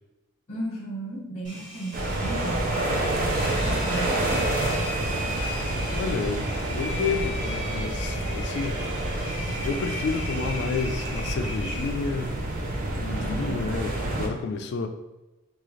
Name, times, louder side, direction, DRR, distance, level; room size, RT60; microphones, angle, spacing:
voice 1, 0.5-2.6 3.4-4.5 13.2-13.8, right 1 dB, 30° left, -4 dB, 1.0 m, -35 dB
Engine, 1.4-12.3, left 1 dB, 20° right, 1.1 m, -38 dB
sound 1, 1.9-14.3, right 1 dB, 40° right, 0.5 m, -28 dB
voice 2, 5.9-8.8 9.6-12.3 12.9-14.9, left 4 dB, 50° left, 7 dB, 0.3 m, -30 dB
3.7 x 2.4 x 3.1 m, 1.0 s
head